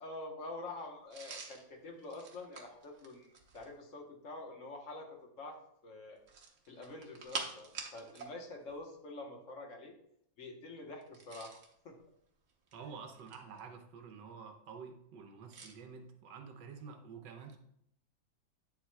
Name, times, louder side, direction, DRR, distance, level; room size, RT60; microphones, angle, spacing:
voice 1, 0.0-5.6 5.8-6.2 6.7-9.9 10.4-11.5 11.8-11.9, left 2 dB, 45° left, 2 dB, 1.3 m, -47 dB
sound 1, 1.1-3.8 6.2-8.3 8.6-8.8 11.0-11.7 12.5-13.6 15.5-15.8, right 4 dB, 50° right, 1.1 m, -46 dB
voice 2, 12.7-17.6, right 5 dB, 70° right, 5 dB, 1.3 m, -49 dB
9.1 x 7.1 x 2.3 m, 0.73 s
omnidirectional pair, 2.1 m